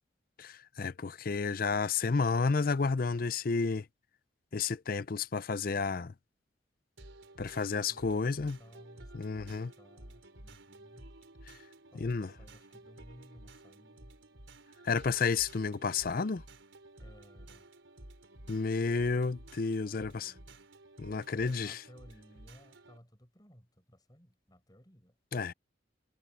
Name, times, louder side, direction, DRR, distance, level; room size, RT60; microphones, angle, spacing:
voice 1, 0.4-3.8 4.5-6.1 7.4-8.6 9.1-9.7 12.0-12.3 14.8-16.4 18.5-20.3 21.0-21.8 25.3-25.5, left 4 dB, 50° left, 0.5 m, -31 dB
sound 1, 7.0-23.0, right 1 dB, 85° right, 4.6 m, -53 dB
voice 2, 7.7-11.1 11.9-14.2 17.0-17.7 20.0-20.6 21.4-25.2, equal, 20° left, 7.4 m, -58 dB
head